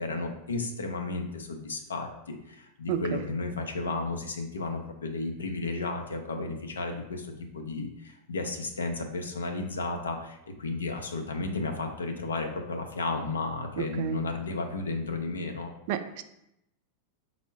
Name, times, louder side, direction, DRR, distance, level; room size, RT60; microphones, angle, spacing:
voice 1, 0.0-15.7, left 3 dB, 80° left, 4 dB, 0.5 m, -33 dB
voice 2, 15.9-16.2, right 11 dB, 55° right, 9 dB, 0.3 m, -30 dB
4.3 x 2.1 x 4.5 m, 0.83 s
hypercardioid pair, 95°, 0 cm